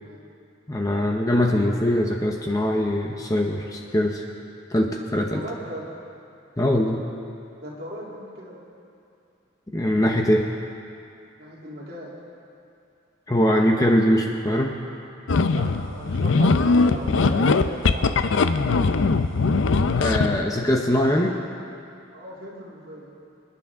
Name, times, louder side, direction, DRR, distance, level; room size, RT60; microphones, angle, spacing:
voice 1, 0.7-4.2 4.7-5.4 6.6-7.0 9.7-10.5 13.3-14.8 19.9-21.4, left 1 dB, 15° left, 1 dB, 0.7 m, -22 dB
voice 2, 5.3-5.9 7.6-8.6 11.4-12.2 15.5-18.1 22.1-23.1, right 1 dB, 50° right, -6 dB, 2.9 m, -38 dB
sound 1, 15.3-20.4, left 4 dB, 75° left, 0.5 m, -20 dB
27.0 x 9.8 x 3.6 m, 2.5 s
head